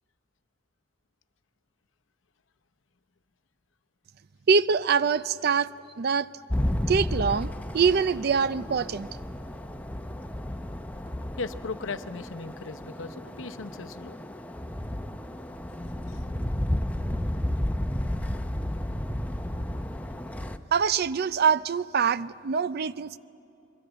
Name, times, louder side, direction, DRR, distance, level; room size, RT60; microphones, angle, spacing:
voice 1, 4.5-6.3 6.9-9.1 20.7-23.2, right 6 dB, 55° right, 16 dB, 0.5 m, -24 dB
sound 1, 6.5-20.6, left 1 dB, 10° left, 0.8 m, -32 dB
voice 2, 11.4-14.2 16.1-16.2, left 4 dB, 80° left, 10 dB, 0.8 m, -37 dB
26.0 x 22.5 x 8.0 m, 2.8 s
head